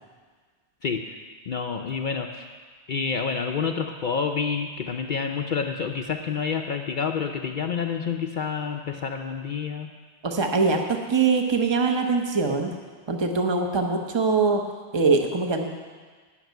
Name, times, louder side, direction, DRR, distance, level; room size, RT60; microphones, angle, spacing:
voice 1, 0.8-1.1 1.5-2.5 2.9-9.9, left 6 dB, 55° left, 3 dB, 0.7 m, -28 dB
voice 2, 10.2-12.7 13.1-14.6 14.9-15.7, right 4 dB, 25° right, 3 dB, 1.0 m, -23 dB
12.0 x 6.1 x 9.3 m, 1.5 s
omnidirectional pair, 1.1 m